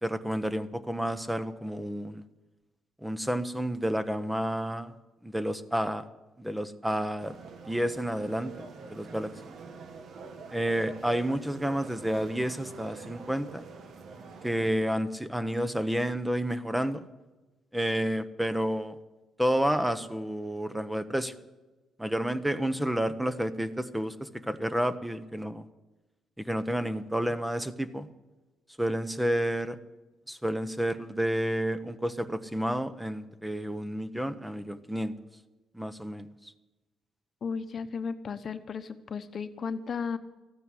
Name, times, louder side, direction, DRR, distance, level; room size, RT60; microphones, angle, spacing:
voice 1, 0.0-2.2 3.0-4.9 5.2-6.1 6.4-7.3 7.7-9.3 10.5-13.7 14.4-17.1 17.7-19.0 19.4-21.3 22.0-25.7 26.4-28.1 28.8-29.8 30.3-35.1 35.7-36.5, equal, 5° right, 11 dB, 0.9 m, -30 dB
sound 1, 7.2-14.7, right 4 dB, 65° right, 1.6 m, -46 dB
voice 2, 37.4-40.2, left 5 dB, 50° left, 10 dB, 1.0 m, -34 dB
14.0 x 9.2 x 9.8 m, 1.1 s
cardioid pair, 90°, 0 cm